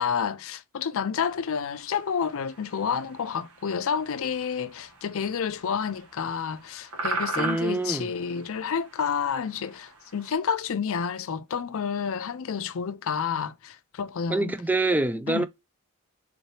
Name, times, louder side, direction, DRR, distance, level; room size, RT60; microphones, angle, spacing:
voice 1, 0.0-14.6 15.3-15.5, left 6 dB, 65° left, 0.5 m, -29 dB
sound 1, 1.2-10.3, right 2 dB, 85° right, 1.3 m, -39 dB
voice 2, 7.4-8.1 14.3-15.5, right 2 dB, 10° right, 0.3 m, -25 dB
3.8 x 2.8 x 3.1 m
head